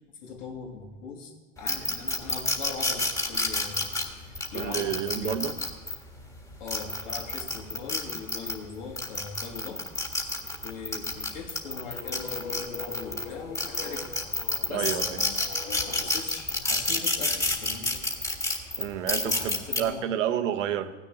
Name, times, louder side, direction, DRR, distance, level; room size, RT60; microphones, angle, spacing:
voice 1, 0.1-5.6 6.6-9.9 10.6-14.2 14.7-15.0 15.3-15.4 15.8-18.0 19.2-20.1, left 5 dB, 80° left, 1 dB, 3.1 m, -40 dB
sound 1, 1.7-5.9 6.5-8.6 9.0-13.2 13.5-19.8, left 2 dB, 10° left, 1.6 m, -28 dB
voice 2, 4.5-5.5 14.7-15.2 18.8-20.9, right 10 dB, 90° right, 8 dB, 1.1 m, -30 dB
sound 2, 11.3-16.2, left 6 dB, 40° left, 1.1 m, -42 dB
15.5 x 6.7 x 9.8 m, 1.4 s
supercardioid pair, 130°, 37 cm